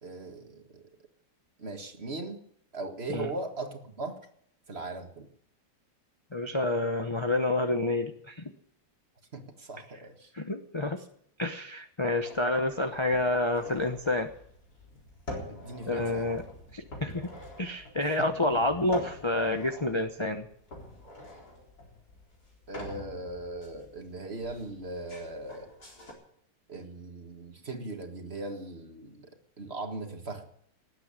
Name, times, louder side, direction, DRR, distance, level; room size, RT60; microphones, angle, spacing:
voice 1, 0.0-0.9 1.6-2.4 2.7-4.2 4.7-5.3 9.3-10.3 11.0-11.1 15.5-16.3 18.2-18.3 22.7-25.7 26.7-30.5, right 2 dB, 35° right, 5 dB, 1.8 m, -39 dB
voice 2, 6.3-8.5 10.3-11.0 11.4-14.3 15.9-16.5 16.7-17.3 17.6-20.5, left 2 dB, 25° left, 5 dB, 0.6 m, -29 dB
sound 1, 12.2-26.1, left 1 dB, 55° left, 4.6 m, -45 dB
19.0 x 8.7 x 8.7 m, 0.67 s
omnidirectional pair, 2.0 m